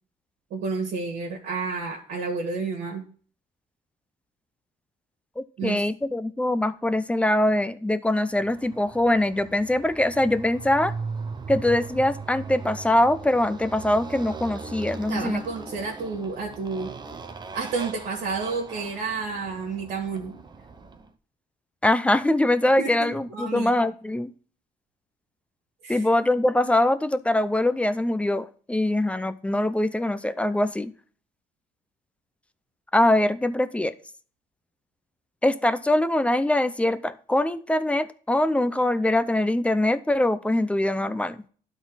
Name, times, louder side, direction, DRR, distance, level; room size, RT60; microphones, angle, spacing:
voice 1, 0.5-3.0 5.6-5.8 15.1-16.9 17.5-20.3 22.8-23.8 25.8-26.1, right 4 dB, 65° right, -1 dB, 2.0 m, -30 dB
voice 2, 5.4-10.9 11.5-15.4 21.8-24.3 25.9-30.9 32.9-33.9 35.4-41.4, left 1 dB, 5° left, 13 dB, 0.6 m, -23 dB
Motorcycle, 8.4-21.1, right 4 dB, 25° right, 0.9 m, -39 dB
11.5 x 4.1 x 4.0 m, 0.43 s
cardioid pair, 110°, 17 cm